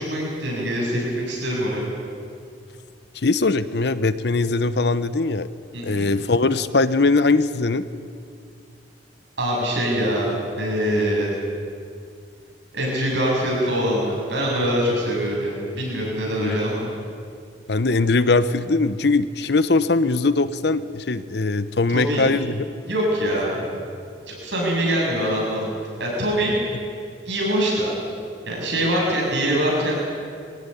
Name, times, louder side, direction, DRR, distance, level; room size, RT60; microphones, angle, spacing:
voice 1, 0.0-1.9 5.7-6.1 9.4-11.3 12.7-16.9 21.9-22.3 22.9-23.7 24.3-25.7 26.0-26.6 27.3-27.9 28.5-30.0, equal, 75° right, -3 dB, 7.6 m, -23 dB
voice 2, 3.1-5.5 5.8-7.8 16.4-16.6 17.7-22.6, left 3 dB, 65° left, 13 dB, 0.8 m, -21 dB
22.5 x 16.5 x 9.9 m, 2.3 s
head